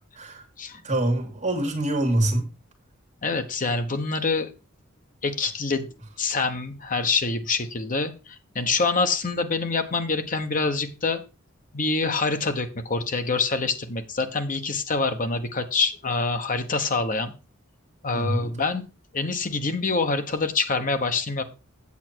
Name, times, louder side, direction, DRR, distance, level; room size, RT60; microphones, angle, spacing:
voice 1, 0.8-2.5 18.1-18.5, right 1 dB, 35° right, 2.2 m, -24 dB
voice 2, 3.2-4.5 5.2-5.9 6.2-11.2 11.7-17.3 18.0-18.8 19.1-21.4, left 4 dB, 40° left, 1.1 m, -26 dB
8.5 x 7.5 x 4.5 m
head